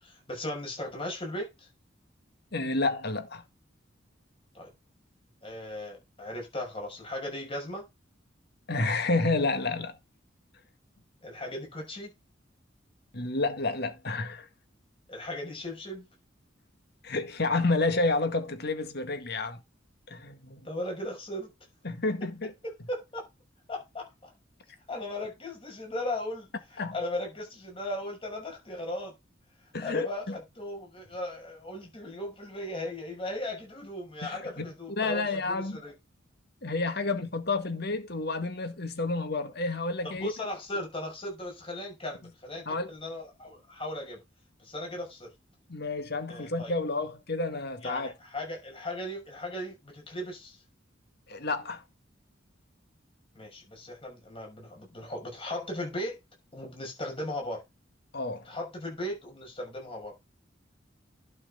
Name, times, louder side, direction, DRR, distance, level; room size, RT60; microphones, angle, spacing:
voice 1, 0.0-1.7 4.5-4.7 5.4-7.9 11.2-12.1 15.1-16.1 20.6-21.5 22.6-23.3 23.7-24.3 24.9-29.1 29.8-35.9 40.0-44.2 44.6-45.3 46.3-46.7 47.8-50.6 53.3-56.2 56.5-57.6 58.4-60.1, left 1 dB, 30° left, 6.1 m, -37 dB
voice 2, 2.5-3.4 8.7-9.9 13.1-14.5 17.0-19.6 20.1-20.7 21.8-22.5 26.8-27.0 29.7-30.4 34.2-34.7 35.0-35.8 36.6-40.3 42.7-42.9 45.7-48.1 51.3-51.8 58.1-58.5, left 3 dB, 60° left, 1.9 m, -30 dB
11.5 x 6.4 x 3.9 m
head